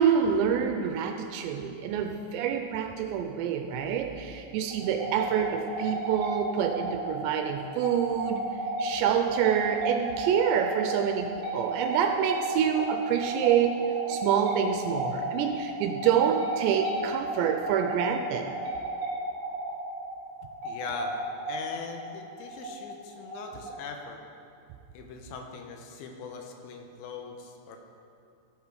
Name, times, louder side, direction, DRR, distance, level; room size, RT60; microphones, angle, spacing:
voice 1, 0.0-8.4 8.8-18.5, right 8 dB, 80° right, 6 dB, 2.6 m, -27 dB
sound 1, 4.7-24.1, right 1 dB, 55° right, 3.0 m, -34 dB
voice 2, 4.8-5.1 20.6-21.2 21.5-24.2 24.9-27.8, left 5 dB, 85° left, 3 dB, 3.2 m, -41 dB
14.0 x 7.0 x 4.9 m, 2.5 s
omnidirectional pair, 5.3 m